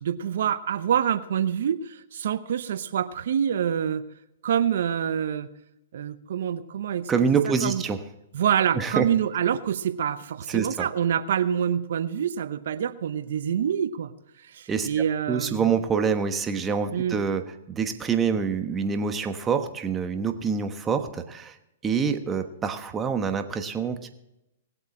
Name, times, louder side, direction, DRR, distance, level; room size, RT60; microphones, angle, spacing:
voice 1, 0.0-4.0 4.4-5.5 5.9-7.1 7.6-7.8 8.3-14.1 14.5-15.7 16.9-17.2, right 9 dB, 70° right, 13 dB, 0.8 m, -26 dB
voice 2, 7.1-8.1 8.7-9.1 10.5-10.9 14.7-14.9 15.3-21.6 21.8-24.1, right 6 dB, 20° right, 7 dB, 1.2 m, -26 dB
19.5 x 8.0 x 4.4 m, 0.89 s
hypercardioid pair, 130°, 0 cm